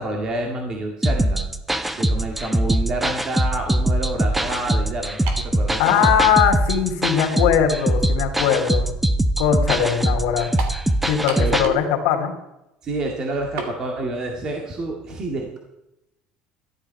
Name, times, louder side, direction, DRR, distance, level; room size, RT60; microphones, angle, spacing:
voice 1, 0.0-1.5 2.0-6.2 11.4-11.6 12.8-15.6, right 2 dB, 30° right, 2 dB, 2.1 m, -28 dB
sound 1, 1.0-11.7, right 1 dB, 5° right, 0.6 m, -22 dB
sound 2, 5.3-5.5 6.4-6.5 10.6-10.8 11.3-11.9 12.2-12.3 13.6-13.8, right 5 dB, 70° right, 3.0 m, -30 dB
voice 2, 5.8-8.9 9.4-10.5 11.0-12.3, left 8 dB, 80° left, 3 dB, 2.7 m, -20 dB
14.0 x 12.0 x 5.7 m, 0.88 s
cardioid pair, 170°, 2 cm